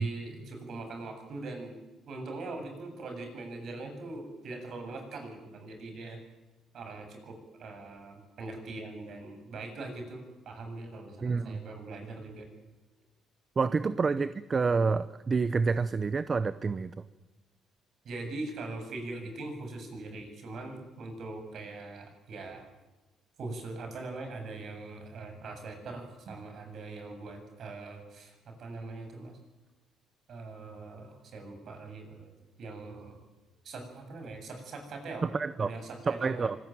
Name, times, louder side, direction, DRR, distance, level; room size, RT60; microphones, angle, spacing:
voice 1, 0.0-1.8 2.1-6.2 6.7-12.5 18.0-22.7 23.4-29.4 30.3-32.3 32.6-33.2 33.6-35.3 35.6-36.5, right 2 dB, 50° right, 5 dB, 7.7 m, -41 dB
voice 2, 11.2-11.6 13.6-16.9 35.3-35.7 36.1-36.6, right 4 dB, 30° right, 14 dB, 0.7 m, -28 dB
25.5 x 20.0 x 9.3 m, 1.1 s
cardioid pair, 130°, 0 cm